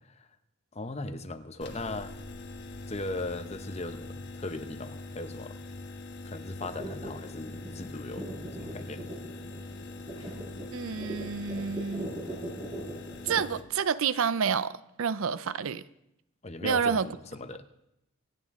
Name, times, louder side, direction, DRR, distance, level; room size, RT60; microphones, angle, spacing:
voice 1, 0.7-2.1 2.9-5.6 6.2-8.3 8.6-9.1 16.4-17.6, left 2 dB, 30° left, 0.7 m, -38 dB
sound 1, 1.6-13.6, left 2 dB, 50° left, 1.2 m, -43 dB
sound 2, 6.6-13.5, right 1 dB, 20° right, 6.6 m, -41 dB
voice 2, 10.7-12.1 13.3-15.8 16.6-17.1, right 6 dB, 70° right, 0.5 m, -29 dB
25.0 x 9.2 x 3.6 m
head